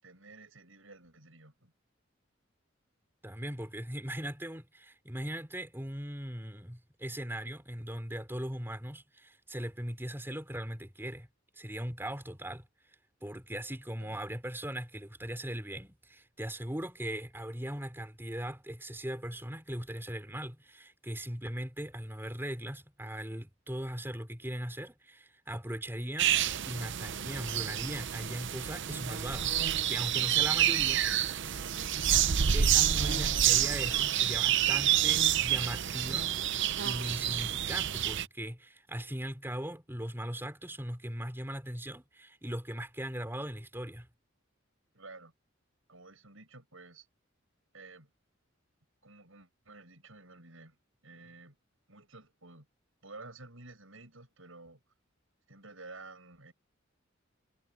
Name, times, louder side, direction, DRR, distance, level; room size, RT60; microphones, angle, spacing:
voice 1, 0.0-1.7 14.0-14.2 44.9-45.3 45.9-47.1 47.7-48.1 49.0-50.8 51.0-51.6 51.9-52.7 53.0-54.8 55.5-56.5, right 3 dB, 80° right, 7.6 m, -52 dB
voice 2, 3.2-11.3 11.6-12.7 13.2-26.3 26.7-31.1 32.5-36.4 36.8-44.1, right 1 dB, 10° right, 3.9 m, -39 dB
sound 1, 26.2-38.3, right 10 dB, 65° right, 0.7 m, -28 dB
head